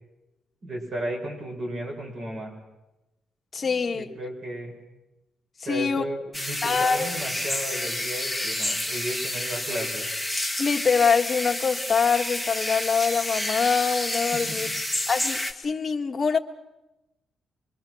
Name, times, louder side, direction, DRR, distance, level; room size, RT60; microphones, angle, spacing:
voice 1, 0.6-2.5 3.6-4.8 5.6-10.0 14.3-14.7, right 1 dB, 45° right, 5.7 m, -34 dB
voice 2, 3.5-4.0 5.7-6.0 6.6-7.1 10.6-14.7 15.1-16.4, left 5 dB, 30° left, 1.3 m, -24 dB
sound 1, 6.3-15.5, left 1 dB, 5° right, 1.5 m, -29 dB
25.0 x 23.0 x 6.2 m
cardioid pair, 145°, 0 cm